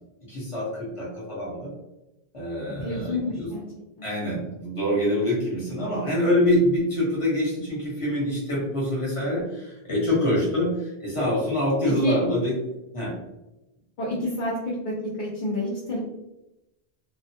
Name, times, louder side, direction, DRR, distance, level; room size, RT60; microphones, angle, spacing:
voice 1, 0.3-1.7 2.3-3.5 4.0-12.5 12.9-13.1, left 1 dB, 30° left, -5 dB, 1.1 m, -25 dB
voice 2, 2.8-3.6 12.0-12.2 14.0-16.0, left 1 dB, 55° left, -5 dB, 0.7 m, -28 dB
2.4 x 2.2 x 2.7 m, 0.92 s
omnidirectional pair, 1.1 m